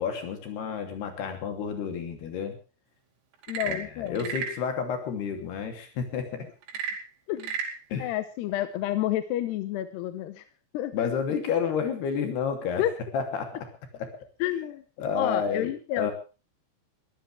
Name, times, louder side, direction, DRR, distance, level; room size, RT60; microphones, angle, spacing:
voice 1, 0.0-2.6 3.6-6.5 7.9-8.1 10.9-12.8 13.1-13.7 13.9-14.1 15.0-16.1, left 6 dB, 60° left, 6 dB, 4.7 m, -30 dB
Frog / Percussion / Wood, 3.3-4.6 6.6-7.8, right 6 dB, 90° right, 5.3 m, -33 dB
voice 2, 3.5-4.3 7.3-7.5 8.0-10.4 10.7-11.1 12.8-12.9 14.4-14.8 15.2-16.1, left 13 dB, 75° left, 11 dB, 2.7 m, -30 dB
22.5 x 15.5 x 3.4 m, 0.32 s
omnidirectional pair, 5.6 m